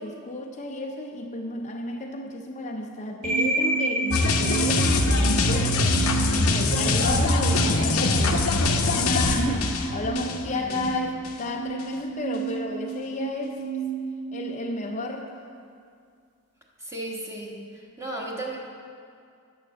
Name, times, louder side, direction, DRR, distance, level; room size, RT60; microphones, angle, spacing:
voice 1, 0.0-8.5 8.9-13.6 14.3-15.3, left 2 dB, 35° left, 2 dB, 0.5 m, -32 dB
sound 1, 3.2-15.3, right 4 dB, 35° right, 2.4 m, -31 dB
sound 2, 4.1-10.9 11.2-11.4, left 2 dB, 75° left, 0.8 m, -23 dB
voice 2, 10.5-10.9 16.8-18.6, right 2 dB, 15° right, -2 dB, 1.3 m, -35 dB
9.1 x 7.3 x 6.3 m, 2.3 s
head